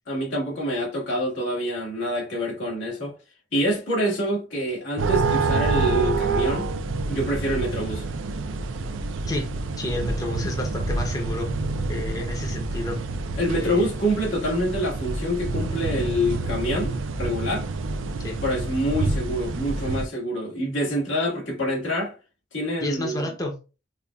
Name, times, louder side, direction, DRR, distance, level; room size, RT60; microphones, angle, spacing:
voice 1, 0.1-3.1 3.5-6.7 7.1-8.1 13.4-17.7 18.4-22.2 22.5-23.3, equal, 85° left, 1.7 m, -26 dB
sound 1, 5.0-20.1, right 3 dB, 90° right, 0.4 m, -27 dB
voice 2, 9.8-11.5 11.9-13.0 13.5-13.9 18.2-18.4 22.8-23.5, left 1 dB, 20° left, 0.6 m, -30 dB
5.4 x 2.2 x 2.3 m
head